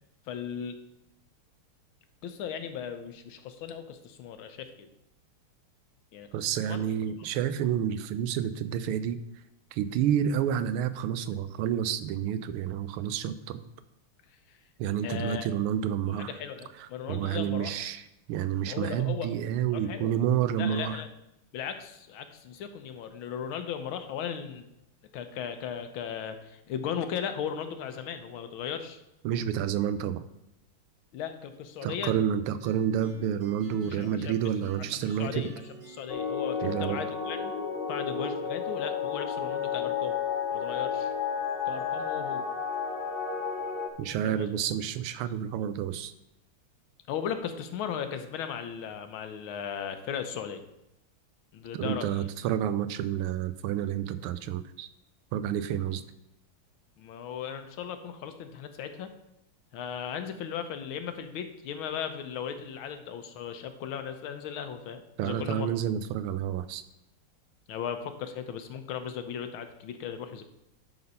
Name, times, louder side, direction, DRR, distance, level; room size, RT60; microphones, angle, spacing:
voice 1, 0.2-0.8 2.2-4.9 6.1-6.9 14.3-14.6 15.0-15.5 16.2-17.9 18.6-19.3 19.7-20.1 20.6-21.1 21.5-24.7 25.1-29.0 31.1-32.2 33.9-34.4 34.9-35.5 35.9-37.5 37.9-40.2 40.5-41.1 41.7-42.5 44.0-44.5 47.1-50.6 51.5-52.3 57.0-59.1 59.7-65.7 67.7-70.4, left 8 dB, 75° left, 8 dB, 1.5 m, -37 dB
voice 2, 6.3-9.2 9.7-13.6 14.8-16.3 17.1-18.0 18.3-21.0 29.2-30.2 31.8-35.5 36.6-37.0 44.0-46.1 51.8-54.9 55.3-56.0 65.2-66.8, right 9 dB, 85° right, 12 dB, 1.5 m, -29 dB
sound 1, 32.6-37.7, right 1 dB, 45° right, 3.0 m, -49 dB
sound 2, 36.1-43.9, left 6 dB, 50° left, 0.7 m, -32 dB
10.5 x 4.0 x 5.5 m, 0.85 s
omnidirectional pair, 2.4 m